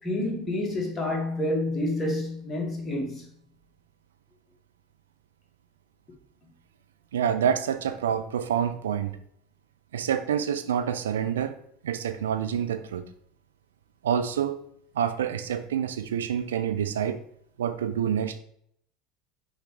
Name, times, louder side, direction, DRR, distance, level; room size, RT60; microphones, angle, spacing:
voice 1, 0.0-3.2, left 1 dB, 20° left, 1.8 m, -28 dB
voice 2, 7.1-9.1 9.9-11.6 11.8-13.1 14.0-14.6 14.9-17.2 17.6-18.4, right 8 dB, 70° right, 0.4 m, -27 dB
6.3 x 4.8 x 3.2 m
figure-of-eight pair, 70°, 0 cm